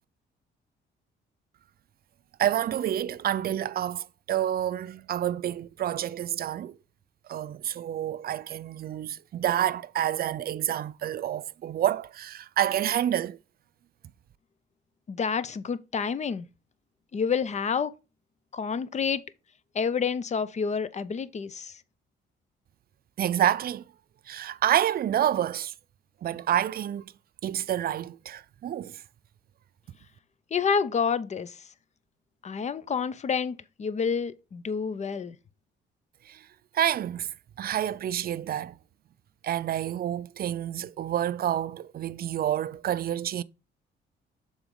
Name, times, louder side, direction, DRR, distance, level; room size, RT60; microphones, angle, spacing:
voice 1, 2.4-6.8 7.3-13.4 23.2-23.8 24.3-25.7 26.2-27.0 27.4-29.0 36.3-36.4 36.7-37.3 37.6-38.8 39.4-43.4, right 11 dB, 50° right, 0.4 m, -28 dB
voice 2, 15.1-16.5 17.1-17.9 18.5-19.2 19.7-21.8 30.5-31.7 32.4-35.4, left 6 dB, 35° left, 0.6 m, -29 dB
6.9 x 3.9 x 3.8 m
cardioid pair, 90°, 20 cm